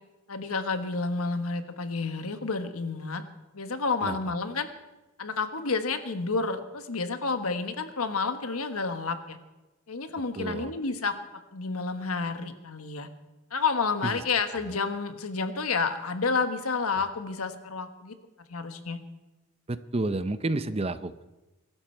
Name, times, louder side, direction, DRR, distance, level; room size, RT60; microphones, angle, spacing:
voice 1, 0.3-3.2 3.5-4.7 5.2-9.4 9.9-11.1 11.5-13.1 13.5-18.1 18.5-19.0, left 4 dB, 80° left, 9 dB, 1.3 m, -30 dB
voice 2, 10.4-10.7 14.0-14.2 19.7-21.3, right 2 dB, 25° right, 13 dB, 0.6 m, -30 dB
23.0 x 12.5 x 4.5 m, 1.1 s
head